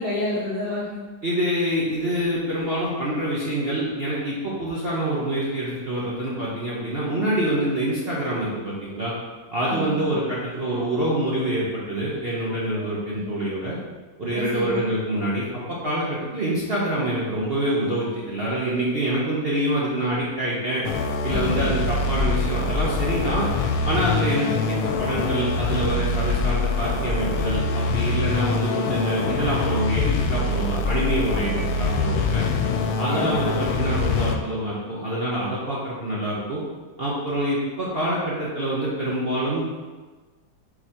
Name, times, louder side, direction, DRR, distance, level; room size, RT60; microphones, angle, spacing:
voice 1, 0.0-1.0 9.7-10.1 12.7-12.8 13.2-13.3 14.3-14.8 21.3-21.7 33.1-33.4, left 1 dB, 45° left, -8 dB, 0.8 m, -30 dB
voice 2, 1.2-9.1 9.5-13.8 14.2-20.8 21.2-23.5 23.8-32.5 33.0-36.6 37.0-39.6, right 1 dB, 45° right, -7 dB, 0.8 m, -26 dB
sound 1, 20.8-34.4, left 3 dB, 85° left, 1.4 m, -24 dB
5.0 x 4.8 x 4.4 m, 1.3 s
omnidirectional pair, 2.1 m